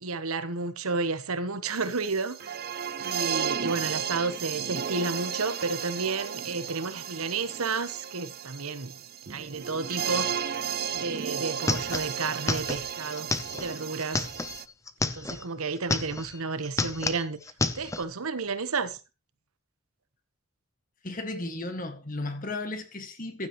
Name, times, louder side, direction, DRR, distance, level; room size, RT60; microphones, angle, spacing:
voice 1, 0.0-2.6 3.0-8.9 9.3-10.5 10.9-13.3 13.6-14.3 15.0-17.4 17.7-19.0, right 4 dB, 80° right, 1.1 m, -31 dB
sound 1, 1.7-14.6, right 8 dB, 45° right, 0.6 m, -34 dB
sound 2, 11.0-11.1 11.3-15.4 15.8-16.4 16.6-18.0, left 3 dB, 15° left, 0.6 m, -31 dB
voice 2, 21.0-23.5, left 2 dB, 35° left, 1.8 m, -34 dB
15.5 x 10.5 x 3.1 m
head